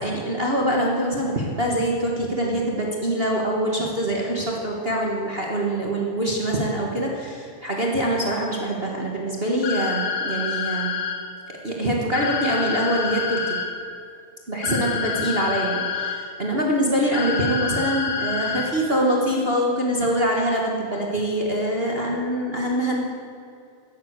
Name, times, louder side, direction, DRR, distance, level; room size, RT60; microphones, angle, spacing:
voice 1, 0.0-11.0 11.6-13.6 14.5-23.0, right 1 dB, 30° right, -2 dB, 1.1 m, -24 dB
sound 1, 9.6-11.2 12.1-13.7 14.6-16.2 17.1-18.7, left 6 dB, 85° left, 2.9 m, -27 dB
13.0 x 10.5 x 8.2 m, 2.4 s
omnidirectional pair, 3.5 m